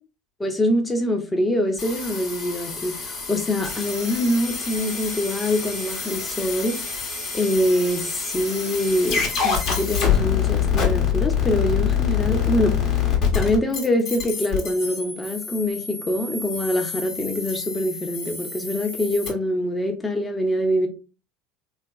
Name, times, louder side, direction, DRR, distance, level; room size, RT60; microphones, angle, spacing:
voice 1, 0.4-6.8 7.3-13.0 13.3-20.9, left 1 dB, 15° left, 0.8 m, -24 dB
sound 1, 1.8-19.3, left 7 dB, 45° left, 1.0 m, -26 dB
3.3 x 2.3 x 2.3 m
figure-of-eight pair, 70°, 0 cm